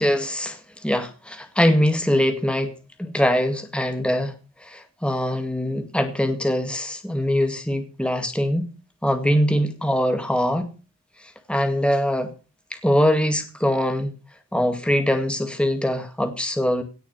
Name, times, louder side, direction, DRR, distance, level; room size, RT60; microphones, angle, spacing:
voice 1, 0.0-2.7 3.0-4.3 4.6-8.7 9.0-10.7 11.5-12.3 12.8-14.1 14.5-16.8, equal, 5° left, 2.0 m, -22 dB
17.0 x 6.7 x 7.3 m
head